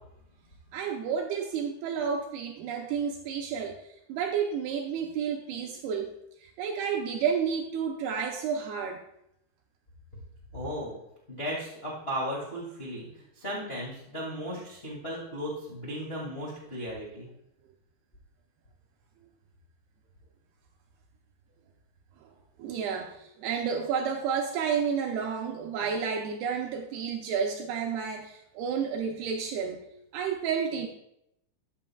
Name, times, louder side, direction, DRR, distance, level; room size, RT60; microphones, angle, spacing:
voice 1, 0.7-9.0 22.2-22.3 22.6-29.8 30.1-30.9, right 6 dB, 80° right, 2 dB, 2.4 m, -31 dB
voice 2, 10.5-10.9 11.3-17.3, equal, 40° left, -5 dB, 0.8 m, -36 dB
13.0 x 8.5 x 2.3 m, 0.80 s
omnidirectional pair, 5.1 m